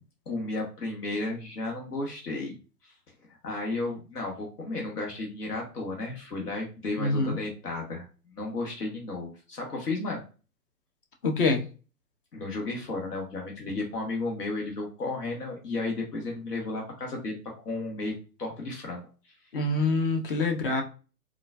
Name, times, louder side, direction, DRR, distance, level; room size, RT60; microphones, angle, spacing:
voice 1, 0.3-2.5 2.8-2.9 3.4-10.2 12.3-17.4 17.6-19.3, left 2 dB, 70° left, 0 dB, 1.2 m, -33 dB
voice 2, 7.0-7.4 11.2-11.6 19.5-20.8, left 3 dB, 35° left, 4 dB, 0.6 m, -25 dB
3.7 x 2.3 x 2.4 m, 0.34 s
figure-of-eight pair, 130°, 49 cm